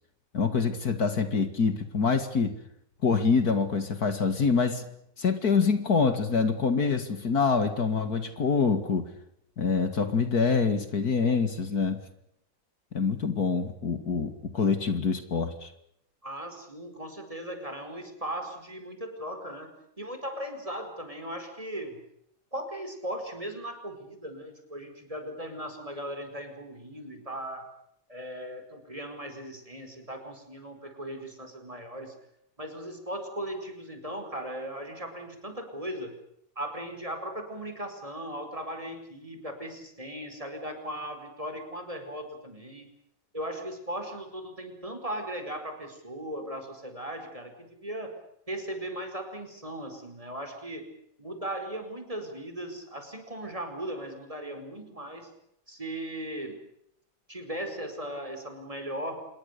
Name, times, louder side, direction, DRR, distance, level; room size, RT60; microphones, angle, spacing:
voice 1, 0.3-2.6 3.0-4.8 5.2-9.1 9.6-12.0 12.9-15.7, left 5 dB, 65° left, 9 dB, 2.5 m, -25 dB
voice 2, 16.2-22.0 22.5-27.7 28.1-32.1 32.6-36.1 36.5-42.9 43.3-48.2 48.5-50.9 51.2-55.3 55.7-56.6 57.3-59.3, right 1 dB, 20° right, 6 dB, 4.9 m, -38 dB
27.0 x 21.5 x 6.8 m, 0.75 s
omnidirectional pair, 1.8 m